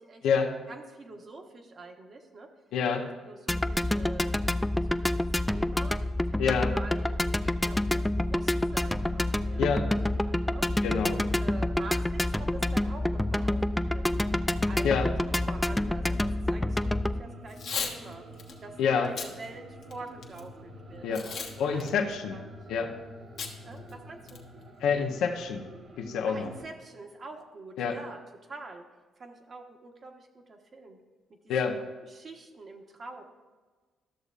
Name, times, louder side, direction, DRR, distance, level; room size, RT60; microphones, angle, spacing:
voice 1, 0.7-2.5 3.0-6.0 6.3-6.4 6.7-7.2 7.4-10.7 11.4-13.6 13.9-15.2 15.4-18.2 18.6-22.6 23.6-24.4 26.3-28.9 29.2-31.0 31.7-33.2, right 3 dB, 45° right, 3 dB, 1.1 m, -46 dB
voice 2, 2.7-3.1 6.4-6.7 9.6-9.9 10.8-11.2 14.8-15.1 18.8-19.1 21.0-21.3 21.6-22.4 22.7-22.9 24.8-25.6 26.0-26.5 27.8-27.9 31.5-31.8, left 6 dB, 85° left, 3 dB, 0.8 m, -27 dB
sound 1, 3.5-17.2, left 1 dB, 10° left, 0.3 m, -28 dB
sound 2, 8.6-26.6, equal, 60° right, 1.5 m, -48 dB
Packing tape duct tape / Tearing, 17.5-17.9 18.4-18.5 19.0-19.3 19.8-20.4 21.1-21.5 21.8-21.9 23.4-23.5 23.9-24.0 24.3-24.6, left 6 dB, 70° left, 1.2 m, -35 dB
13.0 x 6.7 x 2.5 m, 1.3 s
cardioid pair, 90°, 0 cm